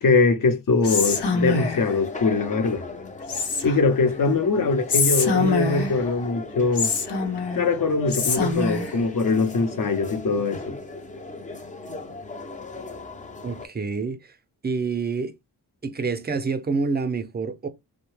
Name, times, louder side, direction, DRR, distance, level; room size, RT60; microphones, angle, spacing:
voice 1, 0.0-2.8 3.6-6.9 7.6-10.7, left 4 dB, 55° left, 0.8 m, -22 dB
Whispering, 0.8-1.9 3.3-4.0 4.9-6.1 6.8-7.7 8.1-9.0, left 4 dB, 85° left, 0.9 m, -24 dB
sound 1, 0.8-13.7, left 3 dB, 20° left, 0.5 m, -37 dB
voice 2, 13.4-14.4 14.6-15.4 15.8-17.7, right 4 dB, 25° right, 0.5 m, -27 dB
2.8 x 2.1 x 3.1 m
cardioid pair, 70°, 39 cm